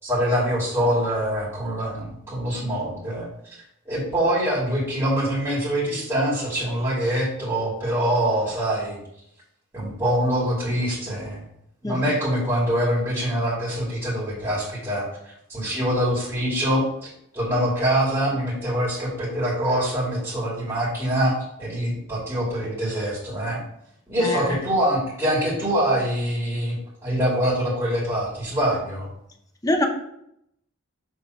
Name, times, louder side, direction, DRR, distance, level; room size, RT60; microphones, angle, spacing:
voice 1, 0.0-3.3 3.9-9.0 9.7-11.4 11.8-23.6 24.1-29.1, right 1 dB, 15° right, -8 dB, 2.5 m, -24 dB
voice 2, 24.2-24.6 29.6-29.9, left 1 dB, 15° left, 3 dB, 0.7 m, -23 dB
6.0 x 3.9 x 4.7 m, 0.75 s
head